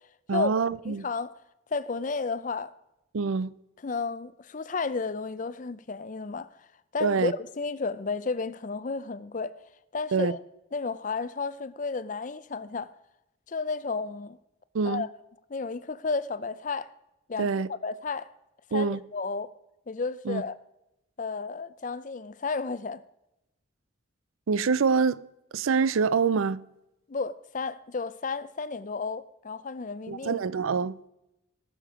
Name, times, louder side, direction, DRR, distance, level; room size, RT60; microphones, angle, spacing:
voice 1, 0.3-1.1 3.1-3.5 7.0-7.3 10.1-10.3 14.7-15.0 17.4-17.7 18.7-19.0 20.3-20.4 24.5-25.2 25.5-26.6 30.1-31.0, right 5 dB, 85° right, 0.5 m, -25 dB
voice 2, 0.9-1.3 1.7-2.7 3.8-6.5 6.9-9.6 9.9-10.4 10.7-12.9 13.5-14.4 14.8-15.1 15.5-16.9 17.3-18.3 18.7-19.5 19.9-20.6 21.2-23.0 27.1-30.4, left 4 dB, 40° left, 0.5 m, -32 dB
19.0 x 6.7 x 4.9 m
head